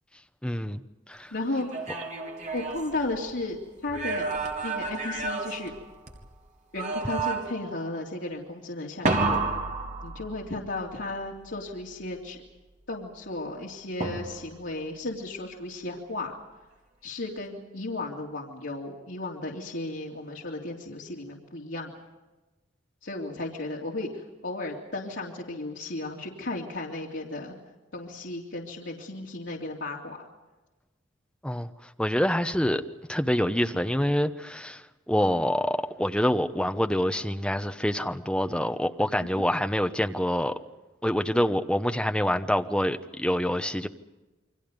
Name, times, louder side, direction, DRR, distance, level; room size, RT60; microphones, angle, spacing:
voice 1, 0.4-0.8 1.1-1.3 31.4-31.7 32.0-32.8 33.1-34.8 35.1-40.6 41.0-43.9, equal, 5° left, 1.0 m, -26 dB
voice 2, 1.3-1.9 2.5-4.3 4.6-5.7 6.7-9.5 10.0-12.4 12.9-16.3 17.0-21.9 23.0-27.5 27.9-30.2 39.4-39.5, left 2 dB, 75° left, 3.1 m, -34 dB
sound 1, 1.5-3.4 3.9-6.3 6.8-7.7 9.1-10.7 14.0-14.7, right 3 dB, 40° right, 3.1 m, -31 dB
29.0 x 24.0 x 5.3 m
head